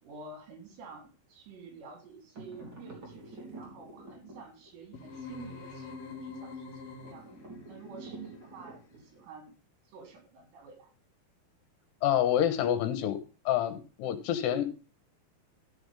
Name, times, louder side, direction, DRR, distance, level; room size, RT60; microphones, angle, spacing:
voice 1, 0.0-7.3 7.7-9.5 9.9-10.9, right 4 dB, 75° right, 4 dB, 5.7 m, -49 dB
sound 1, 2.4-4.9 7.0-9.3, right 2 dB, 30° right, 3.7 m, -48 dB
sound 2, 4.9-7.6, left 4 dB, 40° left, 2.4 m, -44 dB
voice 2, 12.0-13.2 13.5-14.8, left 10 dB, 75° left, 11 dB, 3.1 m, -28 dB
14.5 x 7.9 x 3.5 m, 0.34 s
omnidirectional pair, 5.1 m